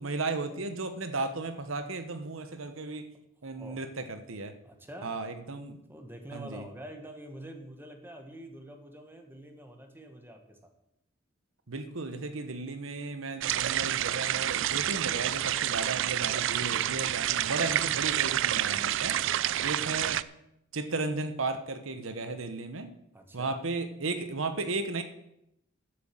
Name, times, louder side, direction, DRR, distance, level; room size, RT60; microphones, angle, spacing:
voice 1, 0.0-3.1 3.4-4.5 5.0-5.8 6.3-6.6 11.7-19.2 19.6-20.2 20.7-22.9 23.3-25.0, right 3 dB, 85° right, 9 dB, 1.1 m, -35 dB
voice 2, 3.5-3.9 4.6-5.1 5.5-10.7 19.4-19.8 23.1-23.6, right 1 dB, 10° right, 4 dB, 1.7 m, -46 dB
sound 1, 13.4-20.2, right 12 dB, 65° right, 0.4 m, -29 dB
10.5 x 7.7 x 7.7 m, 0.80 s
head